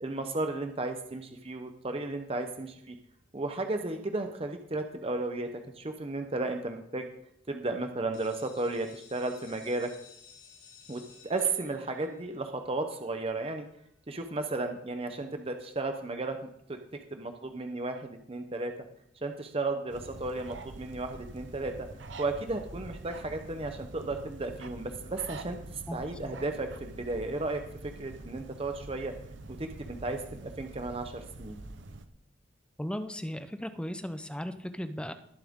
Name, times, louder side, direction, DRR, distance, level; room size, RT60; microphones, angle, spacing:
voice 1, 0.0-3.0 3.3-5.5 5.8-7.1 7.5-9.9 10.9-13.7 14.1-16.4 16.7-16.8 17.1-18.7 19.2-21.9 22.2-29.1 29.5-31.6, right 2 dB, 30° right, 6 dB, 0.8 m, -34 dB
sound 1, 8.1-13.8, left 6 dB, 60° left, 4.7 m, -56 dB
sound 2, 19.9-32.1, right 2 dB, 80° right, 0.9 m, -45 dB
voice 2, 32.8-35.1, equal, 5° left, 9 dB, 0.6 m, -36 dB
20.0 x 7.5 x 3.7 m, 0.74 s
head